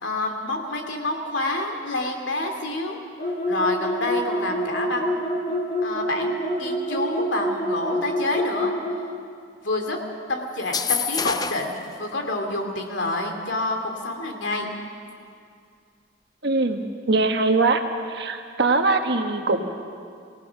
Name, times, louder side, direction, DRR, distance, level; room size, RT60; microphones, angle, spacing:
voice 1, 0.0-3.0 3.5-5.2 5.8-8.7 9.6-10.0 10.3-14.7, left 2 dB, 75° left, 3 dB, 2.7 m, -28 dB
sound 1, 3.2-9.0, equal, 40° left, 3.1 m, -26 dB
sound 2, 10.6-11.8, left 6 dB, 20° left, 0.5 m, -26 dB
voice 2, 16.4-17.8 18.1-19.6, right 3 dB, 60° right, 5 dB, 1.4 m, -22 dB
26.0 x 17.5 x 5.9 m, 2.3 s
head